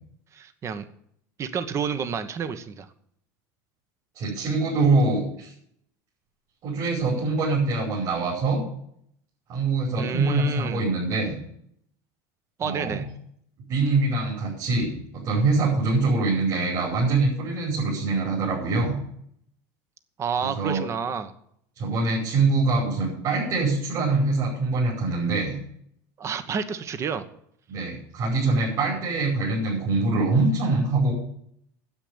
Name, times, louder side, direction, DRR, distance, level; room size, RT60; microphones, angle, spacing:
voice 1, 0.3-0.9 1.4-2.9 10.0-10.8 12.6-13.1 20.2-21.3 26.2-27.2, right 6 dB, 30° right, 11 dB, 1.2 m, -29 dB
voice 2, 4.1-5.5 6.6-8.6 9.5-11.4 12.6-13.0 13.7-19.0 20.4-20.8 21.8-25.6 27.7-31.1, right 3 dB, 50° right, -4 dB, 5.4 m, -24 dB
10.0 x 8.1 x 8.7 m, 0.68 s
supercardioid pair, 125°, 9 cm